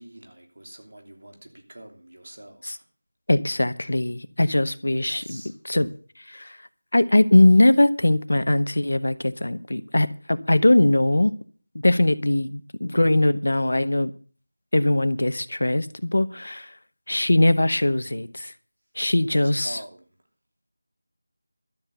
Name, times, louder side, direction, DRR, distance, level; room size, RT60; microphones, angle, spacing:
voice 1, 0.0-2.9 5.1-5.6 19.3-20.1, right 1 dB, 50° right, 3.1 m, -45 dB
voice 2, 3.3-5.4 5.7-5.9 6.3-6.6 6.9-11.3 11.8-14.1 14.7-16.7 17.1-18.5 19.0-19.8, left 1 dB, 55° left, 0.9 m, -21 dB
12.5 x 7.3 x 8.0 m
figure-of-eight pair, 180°, 0 cm